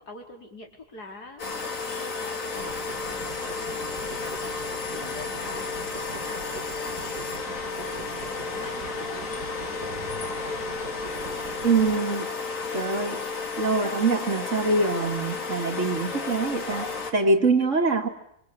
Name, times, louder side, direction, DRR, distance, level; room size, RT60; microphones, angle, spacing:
voice 1, 0.0-2.8 3.1-4.4 4.9-10.7, left 2 dB, 85° left, 2 dB, 4.7 m, -45 dB
sound 1, 1.4-17.1, left 4 dB, 55° left, 2.6 m, -32 dB
sound 2, 2.5-12.0, right 4 dB, 85° right, 2.6 m, -43 dB
voice 2, 11.6-12.3 12.7-13.2 13.6-18.1, right 3 dB, 50° right, 5 dB, 2.6 m, -24 dB
26.0 x 25.5 x 8.0 m, 0.73 s
omnidirectional pair, 1.6 m